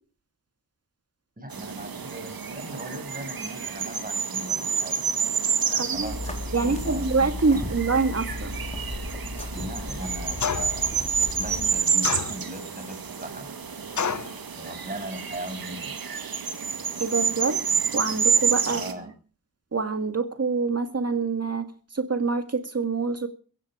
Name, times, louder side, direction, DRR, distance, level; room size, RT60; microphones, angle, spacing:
voice 1, 1.4-5.0 5.7-7.7 9.5-13.5 14.5-16.0 18.6-19.1, right 1 dB, 25° right, 7 dB, 6.3 m, -39 dB
sound 1, 1.5-18.9, right 6 dB, 80° right, 2.0 m, -29 dB
voice 2, 5.8-6.1 6.5-8.5 17.0-17.6 17.9-18.8 19.7-21.7 21.9-23.3, right 4 dB, 45° right, 9 dB, 2.0 m, -25 dB
sound 2, 5.9-11.8, left 2 dB, 20° left, 4.1 m, -35 dB
sound 3, 10.4-10.9 12.0-12.7 14.0-14.4, left 6 dB, 55° left, 1.0 m, -28 dB
16.0 x 14.5 x 5.0 m, 0.40 s
wide cardioid pair, 70°, 35 cm